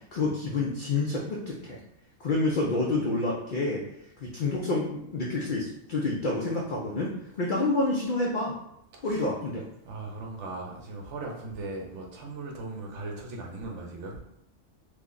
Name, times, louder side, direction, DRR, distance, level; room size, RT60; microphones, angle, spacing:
voice 1, 0.1-1.8 2.2-3.8 4.2-8.6 9.0-9.7, left 2 dB, 65° left, -2 dB, 0.5 m, -28 dB
voice 2, 9.8-14.2, right 2 dB, 65° right, 0 dB, 0.9 m, -38 dB
3.1 x 2.1 x 3.7 m, 0.78 s
omnidirectional pair, 1.4 m